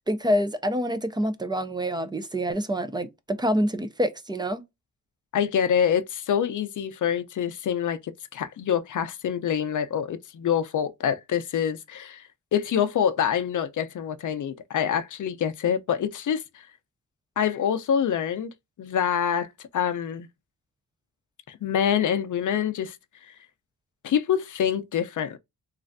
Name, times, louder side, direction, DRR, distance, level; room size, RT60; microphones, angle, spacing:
voice 1, 0.1-4.6, equal, 15° right, 0.3 m, -26 dB
voice 2, 5.3-16.7 17.4-19.5 19.7-20.3 21.5-23.0 23.2-23.3 24.0-25.4, left 8 dB, 55° left, 0.5 m, -26 dB
3.2 x 2.5 x 2.4 m
wide cardioid pair, 145°, 37 cm